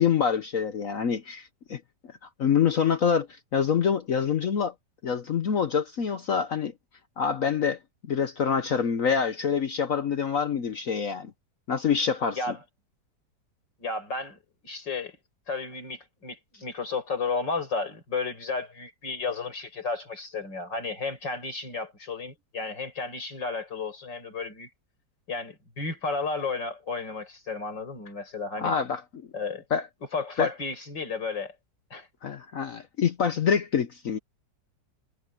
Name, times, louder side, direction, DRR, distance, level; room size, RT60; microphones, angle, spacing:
voice 1, 0.0-1.8 2.4-3.3 3.5-4.7 5.0-6.7 7.2-7.8 8.1-11.3 11.7-12.4 28.6-29.0 29.7-29.8 30.4-30.5 32.2-34.2, left 7 dB, 55° left, 1.2 m, -26 dB
voice 2, 13.8-15.2 15.5-24.7 25.3-28.7 29.3-29.6 30.1-31.6 31.9-32.1, left 4 dB, 85° left, 6.1 m, -33 dB
omnidirectional pair, 1.9 m